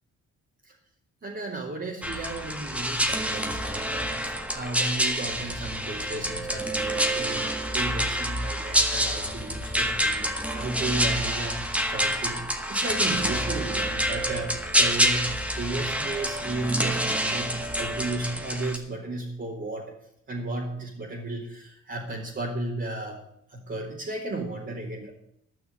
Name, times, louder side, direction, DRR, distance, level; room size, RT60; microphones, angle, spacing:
voice 1, 1.2-7.5 7.7-11.6 11.9-19.9 20.3-23.2 23.5-25.1, right 2 dB, 40° right, -5 dB, 3.0 m, -34 dB
sound 1, 2.0-18.8, equal, 5° right, 1.6 m, -27 dB
12.5 x 6.2 x 9.3 m, 0.74 s
cardioid pair, 90°, 30 cm